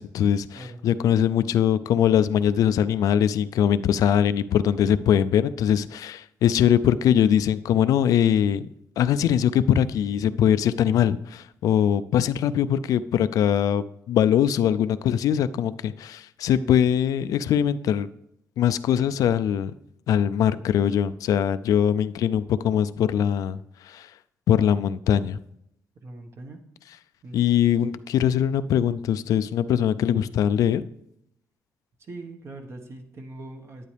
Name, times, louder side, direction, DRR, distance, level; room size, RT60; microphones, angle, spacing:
voice 1, 0.0-8.6 9.0-18.1 18.6-19.7 20.1-24.1 24.5-25.4 27.3-30.8, left 9 dB, 80° left, 14 dB, 0.4 m, -22 dB
voice 2, 16.4-16.8 26.0-26.6 27.2-27.6 32.0-33.9, right 2 dB, 45° right, 4 dB, 1.3 m, -41 dB
11.0 x 9.3 x 3.4 m, 0.78 s
cardioid pair, 105°, 6 cm